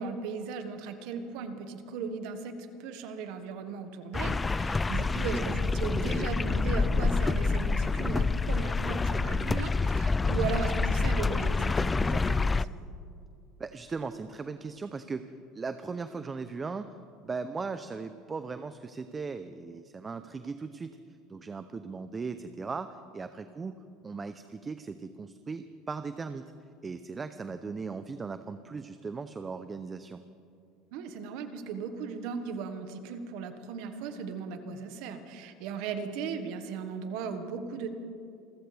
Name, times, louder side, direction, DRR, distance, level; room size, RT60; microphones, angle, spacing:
voice 1, 0.0-12.7 30.9-37.9, right 5 dB, 70° right, 7 dB, 1.5 m, -37 dB
sound 1, 4.1-12.6, left 3 dB, 15° left, 0.3 m, -27 dB
voice 2, 5.0-5.6 13.6-15.2 15.5-17.0 17.2-21.0 21.3-23.8 24.0-26.5 26.8-30.2, right 4 dB, 25° right, 10 dB, 0.6 m, -38 dB
27.5 x 15.0 x 3.4 m, 2.5 s
supercardioid pair, 110°, 0 cm